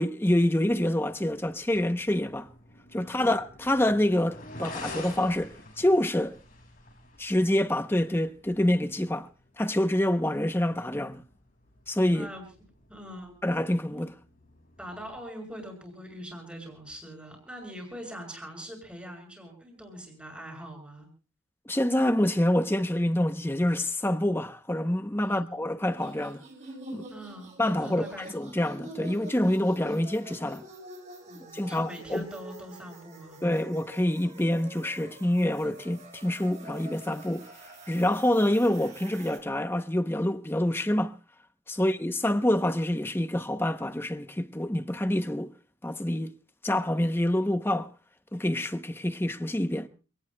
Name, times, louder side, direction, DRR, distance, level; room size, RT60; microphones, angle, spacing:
voice 1, 0.0-2.5 2.9-6.4 7.2-9.3 9.6-11.2 11.9-12.3 13.4-14.1 21.7-26.4 26.9-27.1 27.6-28.1 28.3-30.6 31.4-32.3 33.4-37.5 37.9-41.2 41.7-45.5 45.8-46.3 46.6-47.9 48.3-49.9, left 1 dB, 10° left, 0.7 m, -26 dB
sound 1, 1.1-15.2, left 2 dB, 45° left, 5.9 m, -49 dB
voice 2, 3.0-3.3 12.1-12.4 12.9-13.3 14.8-21.1 25.3-25.6 27.1-27.5 27.8-28.3 31.3-33.4 41.8-41.9 49.7-49.9, equal, 5° right, 6.7 m, -43 dB
sound 2, 25.8-39.4, right 1 dB, 35° right, 6.6 m, -47 dB
28.5 x 18.5 x 2.2 m
head